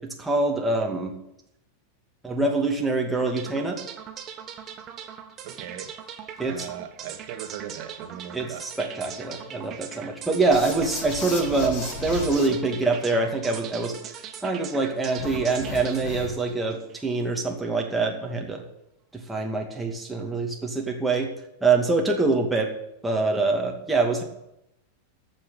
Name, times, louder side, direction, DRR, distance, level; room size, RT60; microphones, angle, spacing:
voice 1, 0.2-1.1 2.2-3.8 6.4-6.7 8.3-13.9 14.4-18.6 19.1-21.3 21.6-22.7 23.0-24.2, right 3 dB, 5° right, 0 dB, 2.4 m, -25 dB
wonderful lab, 3.2-17.3, right 8 dB, 30° right, 1.4 m, -41 dB
voice 2, 5.4-5.9 6.4-8.6, right 10 dB, 45° right, 6 dB, 1.8 m, -39 dB
sound 1, 10.5-12.5 15.2-16.5, left 3 dB, 45° left, 6.4 m, -35 dB
14.0 x 6.4 x 9.1 m, 0.83 s
figure-of-eight pair, 90°, 0 cm